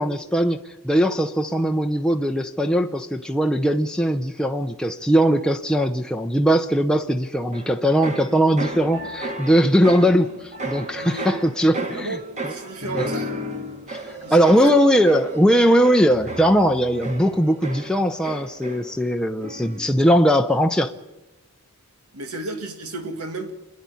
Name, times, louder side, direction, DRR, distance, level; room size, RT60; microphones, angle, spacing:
voice 1, 0.0-12.2 12.4-12.5 12.9-13.1 13.9-14.0 14.3-20.9, equal, 5° left, 0.6 m, -20 dB
sound 1, 7.5-19.1 19.4-19.9, right 1 dB, 35° right, 1.9 m, -34 dB
voice 2, 11.0-11.3 11.9-13.4 14.2-15.0 22.1-23.5, right 2 dB, 80° right, 2.2 m, -33 dB
27.5 x 10.5 x 9.8 m
head